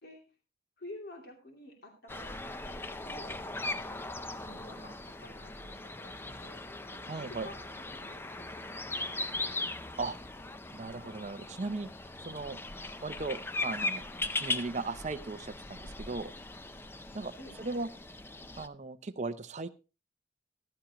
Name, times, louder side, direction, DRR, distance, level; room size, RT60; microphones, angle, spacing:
voice 1, 0.8-3.4 4.5-9.5 17.4-17.6, left 1 dB, 55° left, 2 dB, 2.8 m, -51 dB
sound 1, 2.1-18.7, left 2 dB, 10° left, 0.5 m, -39 dB
voice 2, 7.1-7.5 10.0-10.2 10.7-11.9 12.2-12.6 13.0-14.0 14.4-16.3 17.1-17.3 17.6-17.9 18.6-19.7, right 3 dB, 35° right, 8 dB, 0.6 m, -37 dB
14.5 x 11.5 x 2.9 m, 0.30 s
head